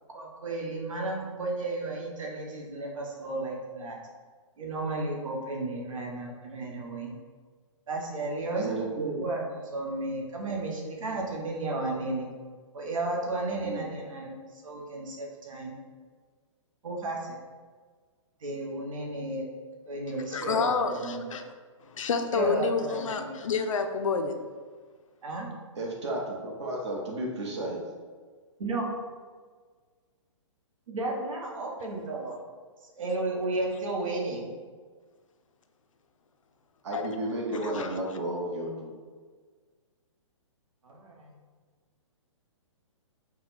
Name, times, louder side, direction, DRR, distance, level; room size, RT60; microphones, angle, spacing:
voice 1, 0.1-4.0 4.6-7.1 7.9-9.4 9.7-12.3 12.7-15.7 16.8-17.4 18.4-19.5 19.8-21.2 22.3-23.4 25.2-25.5 28.6-28.9 30.9-32.4 32.9-34.5 40.8-41.3, right 2 dB, 85° right, -1 dB, 1.1 m, -33 dB
voice 2, 8.5-9.2 13.6-13.8 25.8-27.8 36.8-39.0, right 1 dB, 60° right, -1 dB, 1.0 m, -33 dB
voice 3, 20.3-21.4 21.8-24.4 36.9-37.0 37.6-38.0, left 5 dB, 85° left, 7 dB, 0.5 m, -29 dB
4.1 x 2.2 x 4.1 m, 1.5 s
hypercardioid pair, 170°, 17 cm